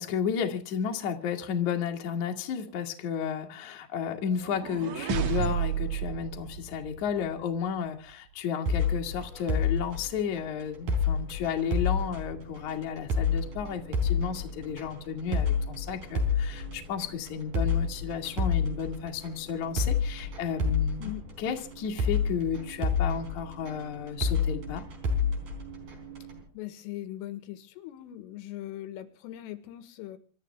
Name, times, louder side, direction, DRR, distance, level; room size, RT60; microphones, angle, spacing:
voice 1, 0.0-21.1 21.4-24.8, left 7 dB, 55° left, 3 dB, 2.3 m, -32 dB
sound 1, 4.2-7.4, right 9 dB, 75° right, 1.8 m, -32 dB
sound 2, 8.7-26.4, left 4 dB, 40° right, 5.1 m, -30 dB
voice 2, 26.6-30.2, left 14 dB, 85° left, 13 dB, 3.9 m, -40 dB
27.5 x 12.5 x 3.4 m, 0.38 s
omnidirectional pair, 5.8 m